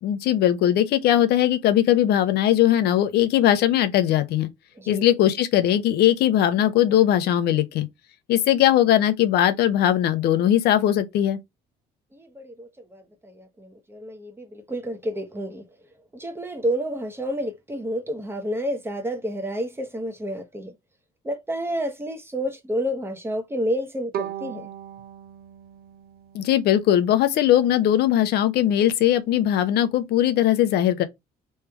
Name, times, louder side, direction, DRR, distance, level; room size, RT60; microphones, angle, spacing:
voice 1, 0.0-4.5 4.9-7.9 8.3-11.4 26.3-31.0, left 11 dB, 75° left, 0.7 m, -20 dB
voice 2, 12.1-15.6 16.1-20.7 21.2-24.7, equal, 15° right, 0.9 m, -30 dB
Bowed string instrument, 24.1-27.2, right 10 dB, 65° right, 0.7 m, -37 dB
3.3 x 3.2 x 3.4 m
cardioid pair, 110°, 17 cm